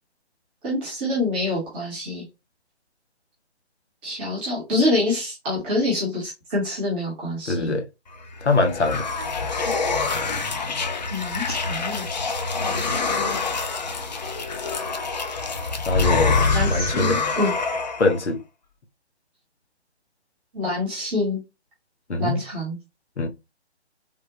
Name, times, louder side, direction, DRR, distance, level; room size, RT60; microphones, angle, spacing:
voice 1, 0.6-2.3 4.0-7.8 11.1-12.1 16.5-17.5 20.5-21.4 22.2-22.8, left 2 dB, 10° right, 0.6 m, -26 dB
voice 2, 7.5-7.9 8.4-9.1 15.9-17.2 18.0-18.4 22.1-22.4 23.2-23.3, left 3 dB, 80° left, 0.7 m, -23 dB
sound 1, 8.2-18.2, left 4 dB, 40° left, 0.5 m, -25 dB
3.4 x 2.0 x 2.8 m
figure-of-eight pair, 140°, 33 cm